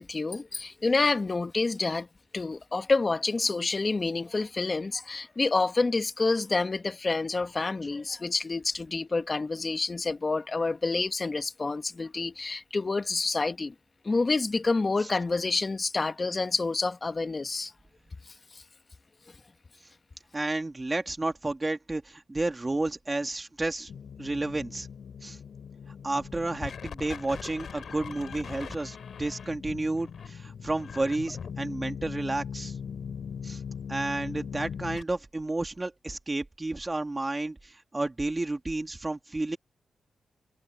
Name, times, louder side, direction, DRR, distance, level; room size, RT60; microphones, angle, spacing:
voice 1, 0.0-2.1 2.3-13.7 14.0-17.7 18.5-18.6, left 3 dB, 35° left, 1.6 m, -28 dB
voice 2, 20.3-23.9 24.2-24.9 25.2-25.4 26.0-32.7 33.4-33.6 33.9-39.6, right 2 dB, 20° right, 2.4 m, -31 dB
sound 1, 23.9-35.0, left 7 dB, 70° left, 4.8 m, -40 dB
cardioid pair, 95°, 0 cm